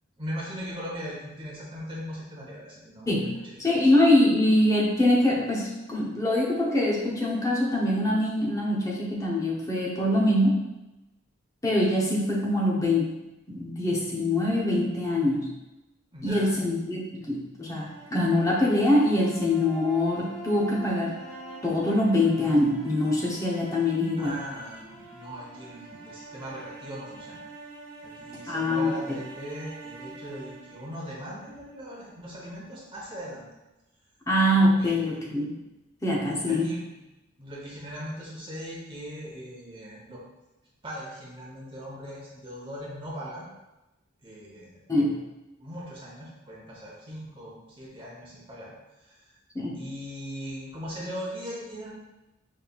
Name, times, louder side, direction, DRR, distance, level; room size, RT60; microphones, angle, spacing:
voice 1, 0.2-3.7 16.1-16.6 24.2-27.4 28.0-33.5 34.8-35.2 36.5-37.0 37.4-40.2 40.8-43.5 44.2-44.8 45.6-49.3 49.7-51.9, equal, 25° right, -5 dB, 0.9 m, -39 dB
voice 2, 3.6-10.6 11.6-13.1 13.5-15.5 16.2-21.1 21.6-24.3 28.5-29.2 34.3-35.5 36.0-36.7 44.9-45.2 49.5-49.8, left 1 dB, 15° left, -4 dB, 0.7 m, -24 dB
sound 1, 17.6-31.8, right 2 dB, 90° right, 1.2 m, -45 dB
5.2 x 3.2 x 2.3 m, 1.0 s
head